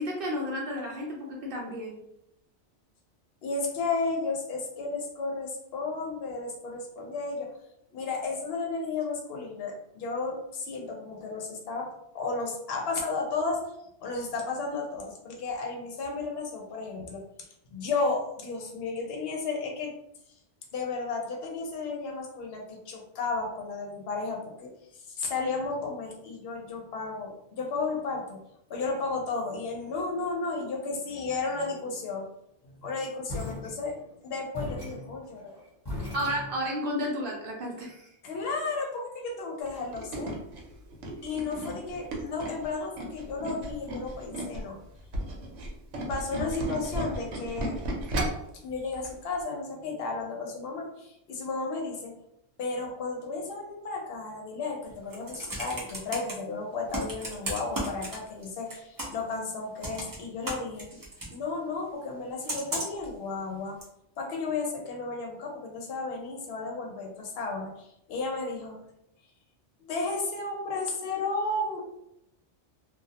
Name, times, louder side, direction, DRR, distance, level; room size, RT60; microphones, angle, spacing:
voice 1, 0.0-2.0 36.1-38.1, equal, 60° right, -2 dB, 0.7 m, -32 dB
voice 2, 3.4-7.5 7.9-11.9 12.1-13.6 14.0-17.2 17.7-19.9 20.7-28.4 28.7-32.3 32.6-33.9 34.2-35.5 38.2-40.3 41.2-44.8 46.1-47.8 48.6-52.2 52.6-60.9 61.3-63.8 64.2-68.8 69.8-71.8, left 3 dB, 65° left, 0 dB, 0.8 m, -33 dB
sound 1, 33.3-34.2 34.5-36.9, left 2 dB, 25° left, 0.9 m, -38 dB
Tools, 39.7-44.6 45.0-48.5 48.9-49.1 49.4-49.5, right 1 dB, 90° right, 0.9 m, -34 dB
Computer keyboard, 54.9-56.3 56.9-58.4 58.7-59.3 59.8-61.3 62.5-63.1 63.8-63.9, right 1 dB, 30° right, 0.4 m, -34 dB
2.3 x 2.0 x 2.7 m, 0.79 s
omnidirectional pair, 1.2 m